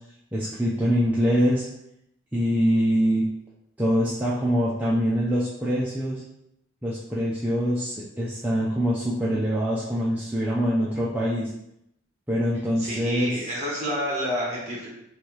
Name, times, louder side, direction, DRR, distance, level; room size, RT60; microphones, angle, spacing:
voice 1, 0.3-1.7 2.3-3.3 3.8-6.2 6.8-11.5 12.3-13.5, equal, 5° right, -8 dB, 0.5 m, -24 dB
voice 2, 12.8-14.9, equal, 35° right, -4 dB, 1.3 m, -29 dB
3.4 x 2.7 x 4.5 m, 0.79 s
head